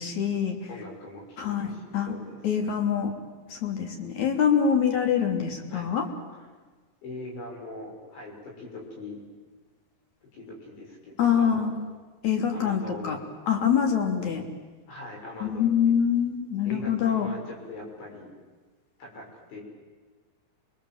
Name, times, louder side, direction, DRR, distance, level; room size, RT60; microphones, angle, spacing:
voice 1, 0.0-0.6 1.4-2.2 2.4-3.1 3.5-6.1 11.2-11.7 12.2-13.2 13.5-14.4 15.4-17.3, left 7 dB, 45° left, 4 dB, 3.8 m, -25 dB
voice 2, 0.7-2.7 5.7-5.9 6.3-6.5 7.0-9.2 10.3-11.7 12.5-13.3 14.9-15.9 16.7-18.3 19.0-19.6, left 2 dB, 80° left, -2 dB, 8.7 m, -42 dB
29.5 x 23.5 x 7.9 m, 1.4 s
omnidirectional pair, 5.1 m